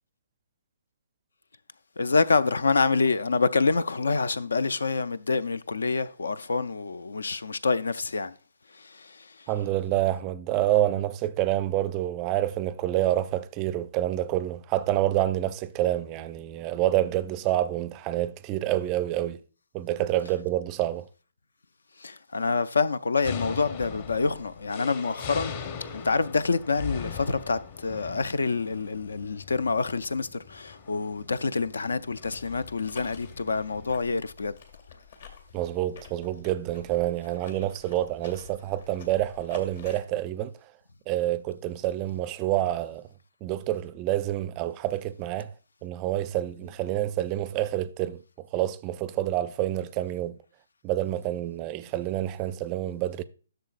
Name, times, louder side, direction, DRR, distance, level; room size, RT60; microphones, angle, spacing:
voice 1, 2.0-8.3 8.8-9.2 22.0-25.5 25.9-34.5, left 4 dB, 80° left, 0.4 m, -27 dB
voice 2, 9.5-19.4 19.7-21.1 35.5-40.5 41.1-43.0 43.4-45.5 45.8-48.2 48.5-50.4 50.8-53.2, right 13 dB, 25° right, 0.4 m, -28 dB
sound 1, 23.2-34.0, left 6 dB, 40° left, 1.0 m, -40 dB
sound 2, 32.8-40.0, left 6 dB, 60° left, 1.9 m, -49 dB
11.0 x 6.5 x 2.4 m
hypercardioid pair, 150°, 0 cm